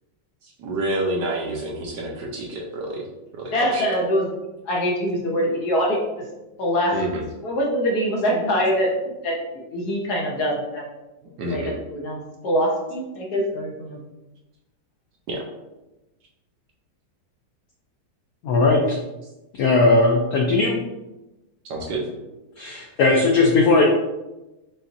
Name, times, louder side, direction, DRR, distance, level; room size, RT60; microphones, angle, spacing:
voice 1, 0.4-3.1 3.3-3.8 6.9-7.2 11.4-11.8 15.3-15.4 21.6-22.0 22.7-22.9, right 2 dB, 70° right, -1 dB, 1.2 m, -28 dB
voice 2, 3.5-4.3 4.7-6.0 6.6-7.0 7.4-8.9 9.2-10.8 11.5-14.0, equal, 65° left, -1 dB, 1.1 m, -24 dB
voice 3, 18.4-19.0 19.6-20.8 22.6-23.8, left 3 dB, 85° left, 0 dB, 0.8 m, -18 dB
5.7 x 2.6 x 2.5 m, 1.0 s
omnidirectional pair, 2.2 m